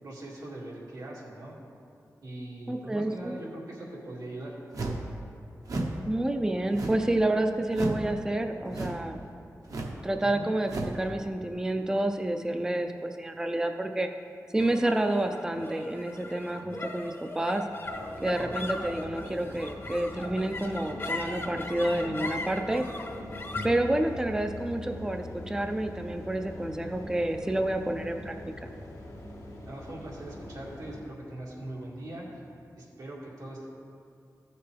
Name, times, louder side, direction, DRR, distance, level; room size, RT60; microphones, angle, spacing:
voice 1, 0.0-1.5 2.2-4.6 10.3-10.5 18.4-18.6 29.7-32.4 32.8-33.7, right 1 dB, 85° right, -5 dB, 2.2 m, -41 dB
voice 2, 2.7-3.4 6.1-9.2 10.0-10.7 11.0-14.1 14.5-17.6 18.2-22.8 23.6-28.4, right 1 dB, 10° right, 5 dB, 0.4 m, -29 dB
sound 1, 4.7-5.1 5.6-6.0 6.7-7.1 7.7-8.1 8.7-9.1 9.7-10.0 10.7-11.0, right 2 dB, 65° right, 1.0 m, -33 dB
sound 2, 14.6-31.1, left 2 dB, 40° left, 0.7 m, -40 dB
sound 3, 17.8-31.0, left 1 dB, 90° left, 1.7 m, -44 dB
14.5 x 6.7 x 3.4 m, 2.5 s
wide cardioid pair, 130°, 6 cm